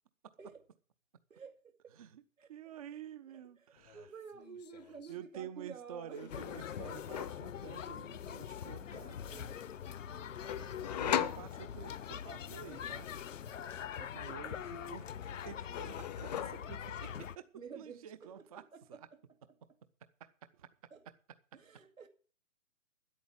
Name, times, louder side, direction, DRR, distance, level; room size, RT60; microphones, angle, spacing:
voice 1, 1.3-2.0 2.4-2.5 2.9-3.0 3.3-6.3 8.8-9.8 10.4-11.2 14.6-15.0 17.5-19.2 20.9-21.1 21.5-22.1, right 6 dB, 80° right, 2.3 m, -52 dB
voice 2, 2.5-4.0 5.1-9.5 11.0-13.1 14.0-15.1 15.4-18.6 18.9-19.0 20.6-20.7, right 9 dB, 30° right, 0.5 m, -49 dB
sound 1, 3.8-4.1 4.3-5.1 6.1-7.5 10.5-12.1 14.3-14.9 15.2-16.9, left 10 dB, 30° left, 0.6 m, -40 dB
sound 2, 6.3-17.4, left 8 dB, 70° left, 0.8 m, -43 dB
10.5 x 8.5 x 7.4 m
hypercardioid pair, 140°, 40 cm